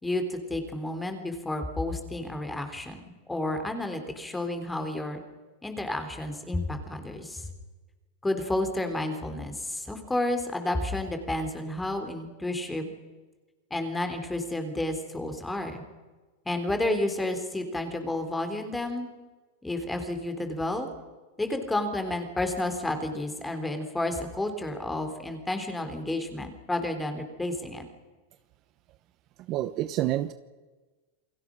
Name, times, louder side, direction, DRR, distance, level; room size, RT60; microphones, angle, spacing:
voice 1, 0.0-5.2 5.6-7.5 8.2-12.9 13.7-15.8 16.4-19.1 19.6-20.9 21.4-27.9, left 1 dB, 5° left, 7 dB, 3.3 m, -31 dB
voice 2, 29.5-30.3, right 14 dB, 35° right, 11 dB, 0.9 m, -28 dB
28.5 x 22.5 x 6.2 m, 1.3 s
supercardioid pair, 150°, 0 cm